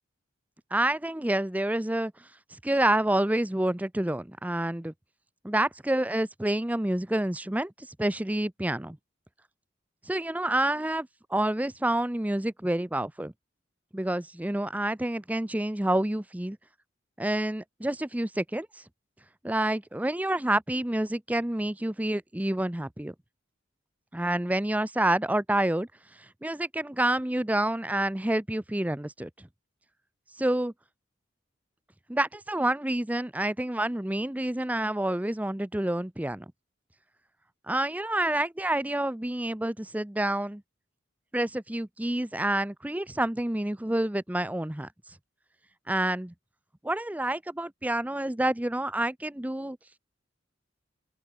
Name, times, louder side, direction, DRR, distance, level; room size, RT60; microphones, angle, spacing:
voice 1, 0.7-2.1 2.6-4.9 5.4-9.0 10.1-13.3 13.9-16.6 17.2-18.7 19.4-23.1 24.1-25.9 26.4-29.5 30.4-30.7 32.1-36.5 37.7-40.6 41.3-44.9 45.9-46.3 46.8-49.8, right 1 dB, 10° right, 0.6 m, -28 dB
open air
head